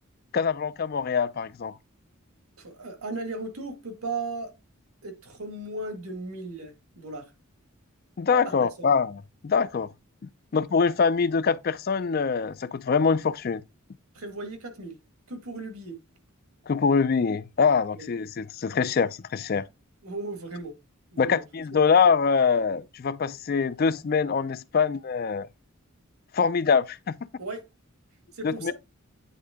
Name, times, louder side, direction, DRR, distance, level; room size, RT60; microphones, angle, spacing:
voice 1, 0.3-1.8 8.2-9.9 10.5-13.6 16.7-19.6 21.2-25.5 26.3-27.2 28.4-28.7, left 5 dB, 45° left, 0.3 m, -24 dB
voice 2, 2.6-4.5 5.0-7.3 8.4-8.9 14.1-15.0 15.3-16.0 17.9-18.1 20.0-20.8 21.1-21.4 21.7-21.8 27.4-27.6 28.3-28.7, right 2 dB, 90° right, 1.8 m, -36 dB
9.4 x 3.6 x 3.6 m
head